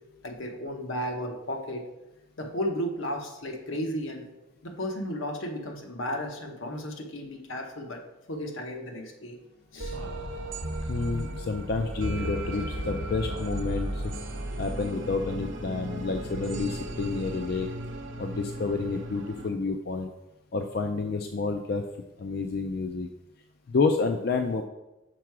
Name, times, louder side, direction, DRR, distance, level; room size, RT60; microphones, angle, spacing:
voice 1, 0.2-1.9 2.4-4.3 4.6-8.0 8.3-9.4 9.7-10.0, equal, 80° left, 3 dB, 1.0 m, -34 dB
sound 1, 9.8-19.5, right 1 dB, 70° right, 0.8 m, -35 dB
voice 2, 10.9-14.1 14.6-17.7 18.2-20.1 20.5-21.8 22.2-23.1 23.7-24.6, left 4 dB, 50° left, 6 dB, 0.4 m, -29 dB
6.1 x 4.6 x 4.7 m, 1.0 s
head